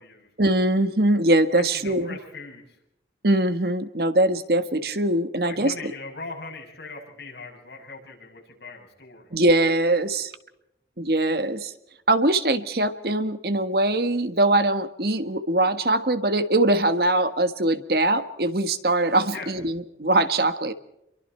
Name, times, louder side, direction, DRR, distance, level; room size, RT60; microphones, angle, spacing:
voice 1, 0.4-2.2 3.2-5.9 9.3-10.3 11.0-11.7 12.1-20.7, right 1 dB, 60° right, 10 dB, 1.5 m, -22 dB
voice 2, 1.7-2.6 5.4-9.3 19.3-19.5, left 3 dB, 70° left, 0 dB, 7.3 m, -39 dB
28.5 x 23.5 x 4.5 m, 0.83 s
head